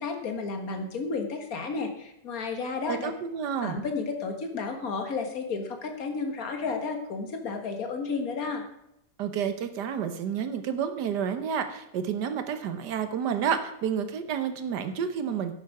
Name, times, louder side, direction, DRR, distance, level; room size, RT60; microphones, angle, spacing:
voice 1, 0.0-3.1 3.6-8.6, left 4 dB, 60° left, 5 dB, 1.9 m, -32 dB
voice 2, 2.9-3.8 9.2-15.5, right 7 dB, 85° right, 9 dB, 1.6 m, -30 dB
11.5 x 9.1 x 4.8 m, 0.82 s
omnidirectional pair, 1.7 m